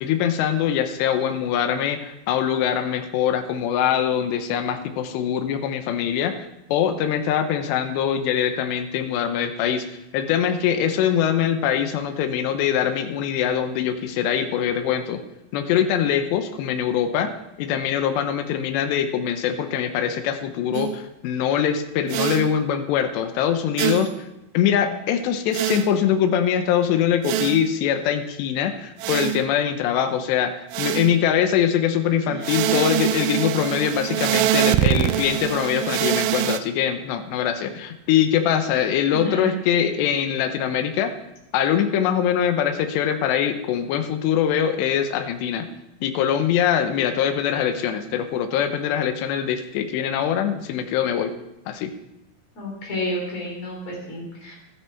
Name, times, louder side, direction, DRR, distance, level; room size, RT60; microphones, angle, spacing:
voice 1, 0.0-9.9 10.1-15.2 15.5-17.3 17.6-24.3 24.5-41.1 41.5-45.7 46.0-51.3 51.7-51.9, left 9 dB, 75° left, 8 dB, 2.8 m, -23 dB
sound 1, 20.7-21.0 22.1-22.5 23.8-24.2 25.5-25.9 27.2-27.7 29.0-29.5 30.7-31.2 32.4-36.6, right 12 dB, 80° right, 2.7 m, -24 dB
voice 2, 32.3-33.1 38.7-39.5 52.5-54.5, left 1 dB, 35° left, -2 dB, 4.2 m, -31 dB
12.5 x 11.0 x 4.6 m, 0.91 s
omnidirectional pair, 5.7 m